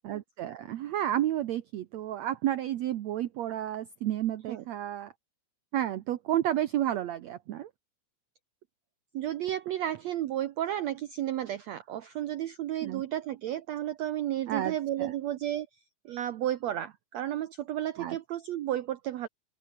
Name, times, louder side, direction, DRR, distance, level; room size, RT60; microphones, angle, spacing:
voice 1, 0.0-5.1 5.7-7.7 12.8-13.0 14.5-14.7 15.0-15.1 18.0-18.2, right 12 dB, 75° right, 1.7 m, -31 dB
voice 2, 9.1-15.8 16.0-19.3, right 12 dB, 90° right, 1.5 m, -32 dB
omnidirectional pair, 4.4 m